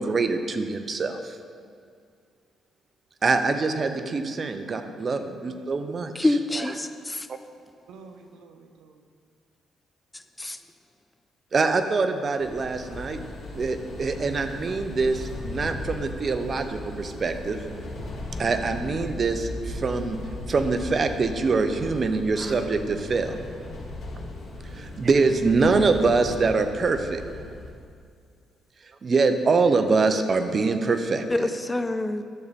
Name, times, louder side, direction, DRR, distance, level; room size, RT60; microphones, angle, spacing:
voice 1, 0.0-1.4 3.2-6.1 6.6-6.7 11.5-13.2 13.5-17.6 18.4-20.2 20.5-23.4 24.7-27.2 29.0-31.5, right 4 dB, 40° right, 8 dB, 0.7 m, -24 dB
voice 2, 4.6-5.7 7.9-9.1, right 5 dB, 85° right, 6 dB, 0.8 m, -47 dB
voice 3, 6.2-7.3 10.4-10.6 31.3-32.2, left 2 dB, 15° left, 10 dB, 0.4 m, -26 dB
sound 1, 12.4-27.7, left 1 dB, 50° left, 2.4 m, -37 dB
12.0 x 6.9 x 4.1 m, 2.2 s
cardioid pair, 90°, 0 cm